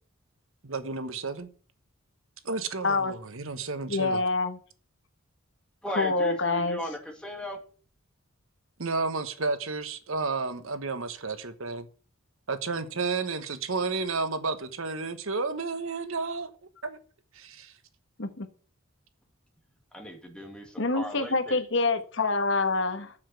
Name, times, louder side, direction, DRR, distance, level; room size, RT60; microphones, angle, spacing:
voice 1, 0.6-1.5 2.4-4.2 8.8-11.9 12.5-16.5 16.8-17.0 17.3-17.7, right 4 dB, 70° right, 11 dB, 1.2 m, -32 dB
voice 2, 3.9-4.6 5.9-6.8 18.2-18.5 20.8-23.1, left 3 dB, 60° left, 9 dB, 1.3 m, -26 dB
voice 3, 5.8-7.6 19.9-21.6, right 1 dB, 5° left, 3 dB, 2.1 m, -37 dB
7.3 x 7.1 x 8.0 m, 0.39 s
head